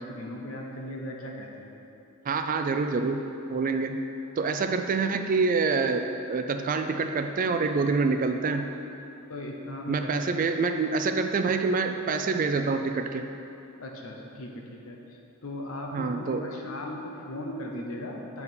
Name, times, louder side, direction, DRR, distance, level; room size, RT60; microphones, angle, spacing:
voice 1, 0.0-1.7 9.3-10.1 13.8-18.4, left 1 dB, 70° left, 0 dB, 0.9 m, -38 dB
voice 2, 2.3-4.0 4.4-8.7 9.9-13.3 15.9-16.4, right 4 dB, 40° right, 7 dB, 0.3 m, -26 dB
8.1 x 4.7 x 5.3 m, 2.8 s
head